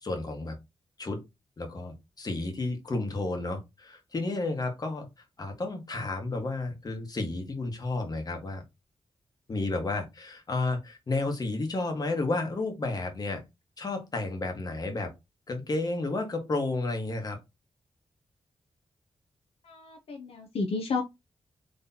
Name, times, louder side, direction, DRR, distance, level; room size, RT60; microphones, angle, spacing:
voice 1, 0.0-0.6 1.0-1.2 1.6-5.1 5.4-8.6 9.5-13.4 13.8-15.1 15.5-17.4, left 2 dB, 40° left, 1.3 m, -31 dB
voice 2, 19.6-21.0, left 4 dB, 70° left, 0.7 m, -32 dB
3.9 x 3.2 x 2.7 m
wide cardioid pair, 110°, 10 cm